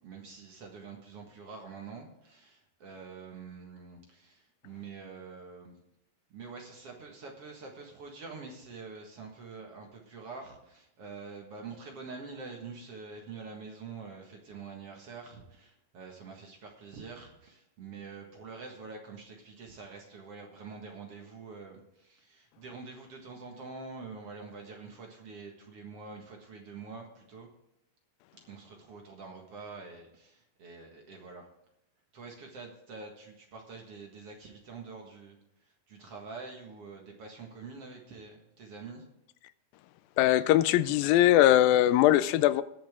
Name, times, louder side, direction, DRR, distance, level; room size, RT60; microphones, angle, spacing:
voice 1, 0.0-5.8 6.3-27.5 28.5-31.5 32.1-39.1, right 4 dB, 50° right, 2.3 m, -46 dB
voice 2, 40.2-42.6, left 13 dB, 85° left, 2.3 m, -21 dB
20.5 x 7.4 x 3.6 m
omnidirectional pair, 4.1 m